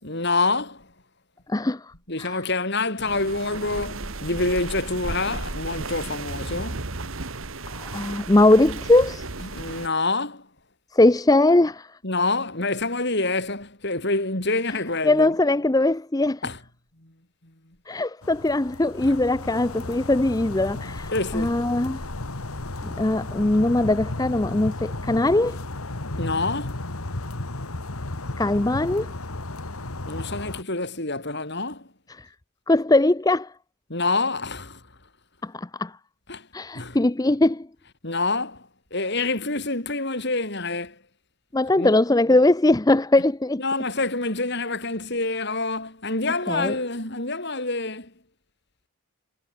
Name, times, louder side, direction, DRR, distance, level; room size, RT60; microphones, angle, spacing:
voice 1, 0.0-0.9 2.1-6.9 9.4-10.5 12.0-15.3 16.4-16.6 17.0-17.1 17.4-17.5 19.0-19.2 21.1-21.5 26.2-26.8 30.1-31.9 33.9-34.8 36.3-36.5 36.7-37.0 38.0-41.0 41.8-41.9 43.6-48.1, left 3 dB, 50° left, 4.7 m, -27 dB
voice 2, 1.5-1.9 2.2-2.4 7.7-9.3 10.9-12.0 15.0-16.4 17.9-22.0 22.8-25.6 28.4-29.1 32.1-32.3 32.7-33.5 35.4-36.0 36.5-37.7 41.5-43.6 46.5-46.7, left 2 dB, 15° left, 0.5 m, -21 dB
sound 1, 3.0-9.9, right 3 dB, 70° right, 1.9 m, -34 dB
sound 2, 18.2-30.6, left 2 dB, 80° left, 2.0 m, -34 dB
head